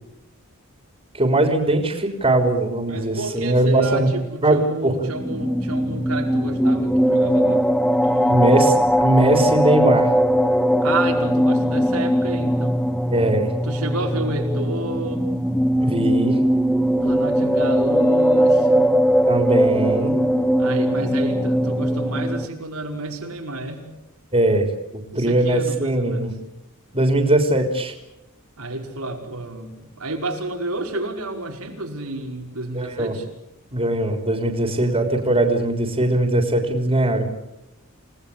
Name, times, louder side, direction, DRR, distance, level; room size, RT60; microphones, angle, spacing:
voice 1, 1.1-4.1 4.4-5.0 8.3-8.7 9.0-10.1 13.1-13.5 15.8-16.4 19.3-20.1 24.3-26.3 26.9-27.9 32.7-33.1 33.7-37.3, right 1 dB, 25° right, 4 dB, 3.6 m, -20 dB
voice 2, 2.9-8.7 10.8-12.8 13.6-15.3 17.0-18.9 20.6-23.8 25.1-26.4 28.6-33.3 34.4-34.6, right 2 dB, 90° right, 2 dB, 5.4 m, -30 dB
sound 1, 5.1-22.5, equal, 5° left, 1.0 m, -20 dB
29.0 x 19.0 x 8.5 m, 0.91 s
head